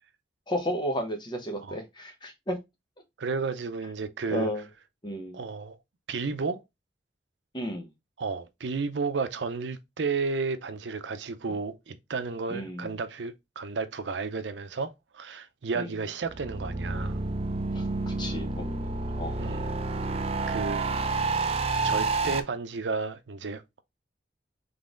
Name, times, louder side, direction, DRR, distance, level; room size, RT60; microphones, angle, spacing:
voice 1, 0.5-2.6 4.3-4.6 5.0-5.4 7.5-7.9 12.5-12.9 15.7-15.9 17.7-19.4, equal, 25° left, 1.1 m, -33 dB
voice 2, 3.2-4.5 5.3-5.8 6.1-6.6 8.2-17.2 19.4-19.7 20.1-20.9 21.5-23.8, right 4 dB, 85° right, 0.6 m, -33 dB
sound 1, 16.3-22.4, right 3 dB, 35° right, 0.5 m, -29 dB
4.0 x 3.3 x 3.7 m
head